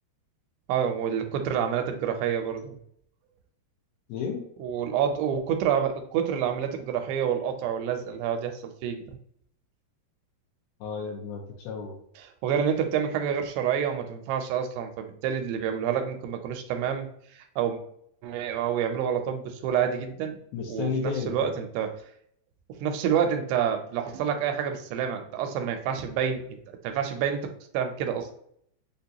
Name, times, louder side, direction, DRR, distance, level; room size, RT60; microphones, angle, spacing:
voice 1, 0.7-2.8 4.6-9.2 12.4-17.1 17.4-17.8 18.2-20.4 20.7-22.0 22.8-26.6 26.8-28.3, right 8 dB, 85° right, 5 dB, 2.7 m, -28 dB
voice 2, 4.1-4.4 10.8-12.0 20.5-21.5, left 5 dB, 75° left, 0 dB, 2.4 m, -32 dB
6.3 x 2.3 x 2.7 m, 0.68 s
omnidirectional pair, 4.8 m